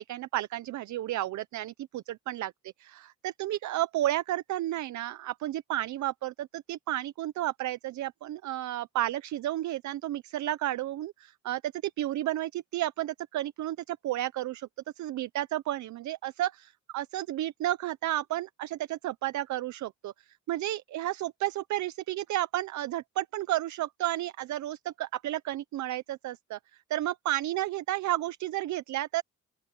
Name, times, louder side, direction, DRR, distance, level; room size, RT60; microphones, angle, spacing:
voice 1, 0.0-2.5 2.8-11.7 12.0-14.7 15.0-26.6 26.9-29.2, right 14 dB, 70° right, 0.7 m, -32 dB
open air
cardioid pair, 90°, 30 cm